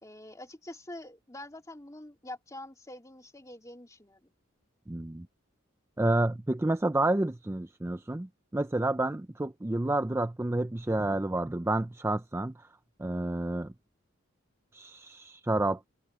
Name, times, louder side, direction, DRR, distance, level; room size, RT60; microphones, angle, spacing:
voice 1, 0.0-4.3, left 1 dB, 15° left, 2.8 m, -45 dB
voice 2, 4.9-5.3 6.0-12.7 13.0-13.7 14.7-15.9, right 2 dB, 10° right, 0.4 m, -29 dB
head